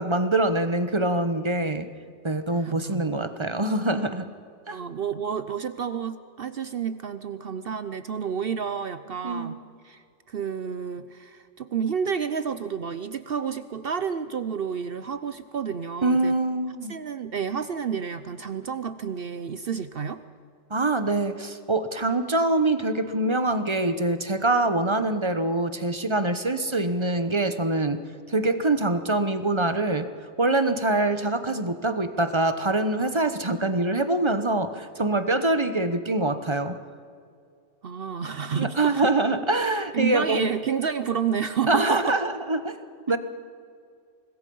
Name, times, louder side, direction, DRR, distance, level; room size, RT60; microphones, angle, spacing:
voice 1, 0.0-1.9 2.2-4.3 4.7-4.8 9.2-9.6 16.0-17.0 20.7-28.0 28.3-30.1 30.4-36.8 38.5-40.4 41.7-42.8 43.1-43.2, right 2 dB, 25° right, 10 dB, 1.0 m, -24 dB
voice 2, 2.5-3.1 4.7-9.6 9.8-16.3 16.9-20.2 37.8-39.1 39.9-42.2, right 7 dB, 55° right, 12 dB, 0.8 m, -30 dB
25.0 x 20.5 x 5.5 m, 2.3 s
omnidirectional pair, 1.3 m